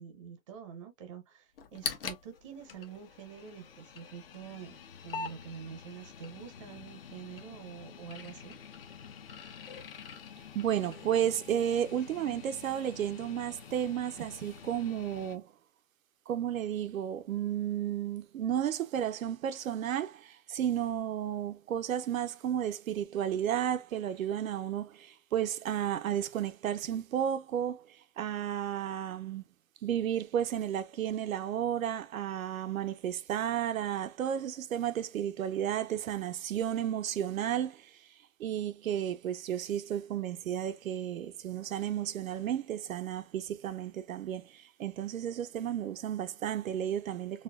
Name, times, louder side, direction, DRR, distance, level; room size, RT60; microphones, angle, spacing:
voice 1, 0.0-4.8 5.0-8.6, right 7 dB, 25° right, 0.6 m, -46 dB
sound 1, 1.6-15.4, left 6 dB, 45° left, 0.7 m, -45 dB
voice 2, 10.5-15.5 16.3-29.4 29.8-37.9 38.4-47.4, right 10 dB, 80° right, 0.6 m, -33 dB
4.2 x 2.2 x 2.3 m
hypercardioid pair, 160°, 40 cm